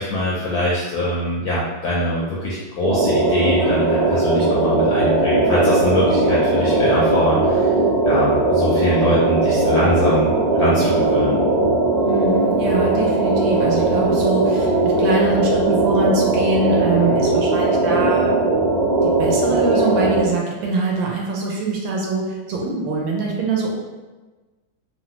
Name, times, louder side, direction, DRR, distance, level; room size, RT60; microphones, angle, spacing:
voice 1, 0.0-7.6 8.0-11.4, left 1 dB, 75° left, -6 dB, 0.8 m, -23 dB
sound 1, 2.8-20.2, right 2 dB, 45° right, 1.3 m, -18 dB
voice 2, 11.9-18.3 19.0-23.8, right 3 dB, 75° right, -1 dB, 1.3 m, -24 dB
3.3 x 2.1 x 2.9 m, 1.2 s
omnidirectional pair, 2.1 m